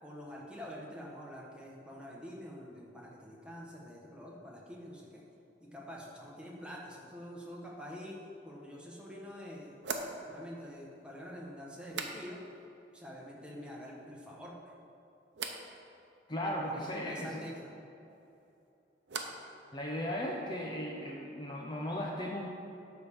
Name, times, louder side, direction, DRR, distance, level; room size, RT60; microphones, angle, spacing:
voice 1, 0.0-5.2 5.6-9.9 10.2-12.4 12.9-14.7 16.6-17.7, equal, 5° right, -4 dB, 1.2 m, -46 dB
sound 1, 8.6-8.7 9.8-12.7 12.9-13.5 13.9-14.5 15.3-15.7 18.1-19.5 19.8-20.4, right 4 dB, 75° right, 0.7 m, -44 dB
voice 2, 16.3-17.5 19.7-22.5, equal, 25° left, -1 dB, 0.6 m, -36 dB
10.0 x 3.6 x 6.8 m, 2.9 s
head